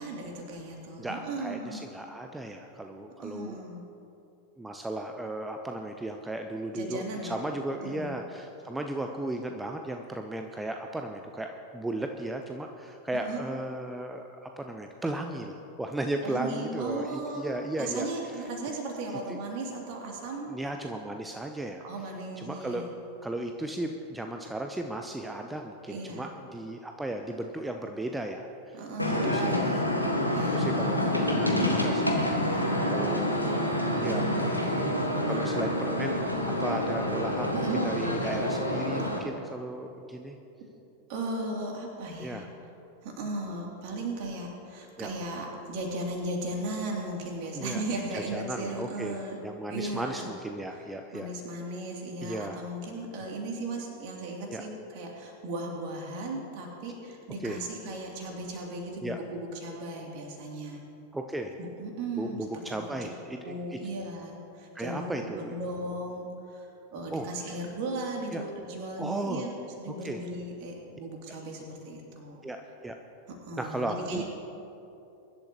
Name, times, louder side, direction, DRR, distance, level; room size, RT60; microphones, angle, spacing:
voice 1, 0.0-1.8 3.2-3.8 6.7-7.4 7.8-8.1 13.1-13.4 16.2-20.6 21.8-22.9 25.9-26.3 28.7-30.0 30.3-31.4 32.4-35.4 37.5-37.9 39.1-39.2 41.1-42.4 43.0-49.4 49.7-50.3 50.7-50.8 51.1-60.8 61.6-63.0 63.4-69.5 69.8-72.4 73.3-74.2, right 2 dB, 45° right, 0 dB, 2.8 m, -37 dB
voice 2, 1.0-3.6 4.6-18.1 19.3-19.4 20.5-21.8 22.4-22.9 23.2-28.8 29.1-29.7 30.3-32.2 32.9-33.6 34.0-34.3 35.2-40.4 42.2-42.5 45.0-45.1 47.5-47.8 48.1-51.3 52.2-52.7 54.5-54.6 57.4-57.6 59.0-59.2 61.1-61.5 62.2-63.8 64.7-65.5 67.1-67.3 68.3-68.4 69.0-69.4 70.0-70.2 72.4-73.0 73.6-74.2, right 1 dB, 5° right, 4 dB, 0.7 m, -35 dB
sound 1, 29.0-39.2, left 1 dB, 90° left, 1.6 m, -27 dB
23.0 x 11.5 x 3.0 m, 2.8 s
figure-of-eight pair, 90°, 0 cm